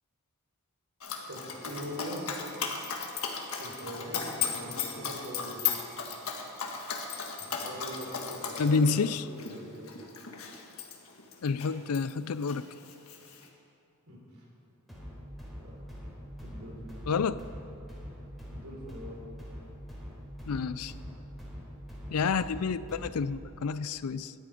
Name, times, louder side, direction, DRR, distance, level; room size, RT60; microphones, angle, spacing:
Dog, 1.0-12.1 12.4-13.5, left 6 dB, 70° left, 1.6 m, -36 dB
voice 1, 1.3-2.3 3.6-5.6 7.4-10.0 14.1-14.5 15.6-15.8 16.4-16.8 18.4-19.2, equal, 70° right, 4.0 m, -42 dB
voice 2, 8.6-9.3 11.4-12.6 17.1-17.4 20.5-20.9 22.1-24.3, left 5 dB, 90° left, 0.5 m, -29 dB
sound 1, 14.9-23.4, equal, ahead, 3.9 m, -44 dB
17.0 x 12.0 x 5.0 m
head